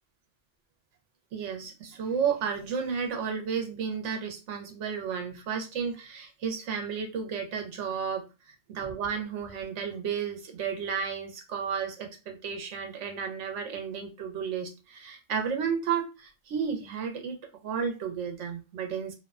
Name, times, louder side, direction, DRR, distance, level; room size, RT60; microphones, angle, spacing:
voice 1, 1.3-17.4 17.6-19.1, right 6 dB, 80° right, 3 dB, 0.9 m, -32 dB
2.6 x 2.1 x 2.3 m, 0.29 s
omnidirectional pair, 1.2 m